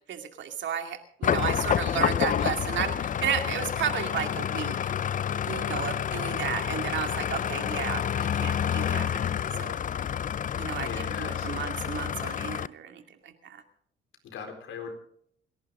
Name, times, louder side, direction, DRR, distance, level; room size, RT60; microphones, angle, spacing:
voice 1, 0.1-4.8 5.5-9.2 9.6-9.8 10.6-13.6, right 8 dB, 70° right, 6 dB, 2.4 m, -33 dB
sound 1, 1.2-12.7, left 9 dB, 40° left, 0.5 m, -29 dB
voice 2, 10.8-11.6 14.2-14.9, left 6 dB, 75° left, 4 dB, 4.3 m, -39 dB
28.5 x 11.0 x 3.8 m, 0.65 s
cardioid pair, 90°, 20 cm